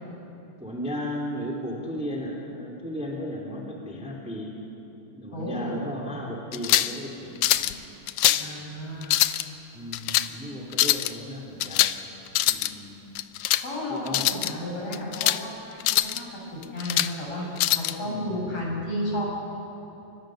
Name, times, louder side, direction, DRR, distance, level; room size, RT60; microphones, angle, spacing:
voice 1, 0.6-4.5 5.1-7.8 8.2-8.6 9.7-11.9 12.4-13.0 13.9-14.3 18.0-18.4, equal, ahead, -2 dB, 2.6 m, -35 dB
voice 2, 5.3-5.9 8.3-9.2 13.6-17.5 17.7-19.3, left 1 dB, 45° left, -3 dB, 7.8 m, -33 dB
sound 1, 6.5-7.0 7.4-7.7 8.1-8.5 9.0-9.4 9.9-10.3 10.7-11.1 11.6-12.0 12.3-12.7 13.2-13.6 14.1-14.5 14.9-15.4 15.8-16.2 16.6-17.1 17.6-17.9, left 15 dB, 75° left, 1.9 m, -23 dB
29.5 x 25.0 x 6.6 m, 3.0 s
omnidirectional pair, 3.8 m